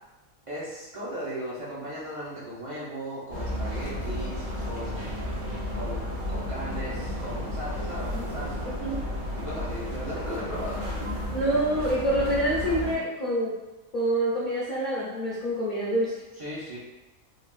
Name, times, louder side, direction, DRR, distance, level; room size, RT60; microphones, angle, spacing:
voice 1, 0.5-5.2 5.7-6.0 6.3-8.7 9.3-10.8 16.4-16.8, equal, 40° right, -8 dB, 0.5 m, -37 dB
sound 1, 3.3-13.0, left 1 dB, 60° right, 1.0 m, -32 dB
voice 2, 11.3-13.6 13.9-16.2, right 1 dB, 60° left, -6 dB, 0.5 m, -26 dB
3.3 x 2.4 x 2.3 m, 1.1 s
omnidirectional pair, 1.5 m